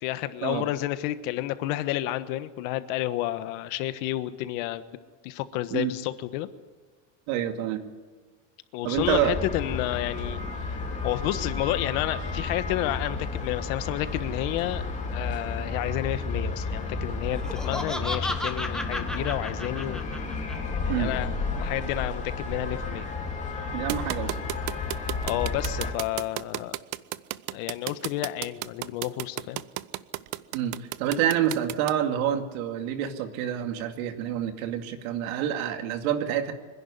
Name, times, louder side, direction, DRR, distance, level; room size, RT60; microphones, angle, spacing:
voice 1, 0.0-4.8 5.2-6.5 8.7-10.7 11.0-14.8 15.1-20.1 20.9-23.1 25.2-26.8 27.5-29.6, left 15 dB, 70° left, 12 dB, 1.4 m, -30 dB
voice 2, 7.3-7.8 8.8-9.4 20.9-21.1 23.7-24.4 30.5-36.5, right 10 dB, 85° right, 6 dB, 2.4 m, -27 dB
sound 1, 8.9-25.9, left 4 dB, 15° left, 2.8 m, -32 dB
Laughter, 17.3-20.5, left 1 dB, ahead, 1.2 m, -33 dB
sound 2, 23.9-31.9, right 18 dB, 50° right, 0.6 m, -32 dB
25.0 x 11.0 x 9.8 m, 1.5 s
cardioid pair, 160°, 41 cm